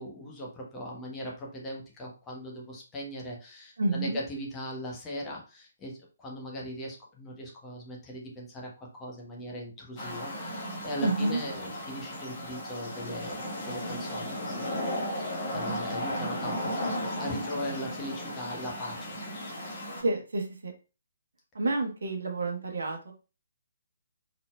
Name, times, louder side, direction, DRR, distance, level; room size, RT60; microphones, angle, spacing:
voice 1, 0.0-14.7 15.5-16.7 17.0-19.2, equal, 15° left, -2 dB, 1.1 m, -39 dB
voice 2, 3.8-4.2 11.0-11.4 20.0-20.7 21.5-23.1, right 2 dB, 60° right, 2 dB, 1.2 m, -29 dB
sound 1, 10.0-20.0, equal, 35° left, 1.4 m, -35 dB
4.0 x 3.9 x 2.3 m, 0.32 s
figure-of-eight pair, 135°, 0 cm